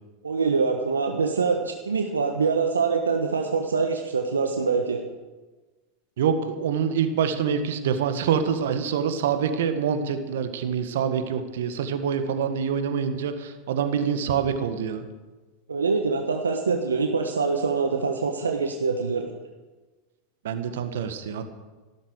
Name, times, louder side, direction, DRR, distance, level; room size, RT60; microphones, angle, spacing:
voice 1, 0.2-5.0 15.7-19.3, right 4 dB, 85° right, 3 dB, 1.2 m, -24 dB
voice 2, 6.2-15.1 20.4-21.4, right 7 dB, 70° right, 8 dB, 1.7 m, -26 dB
14.5 x 12.5 x 6.6 m, 1.2 s
hypercardioid pair, 90°, 0 cm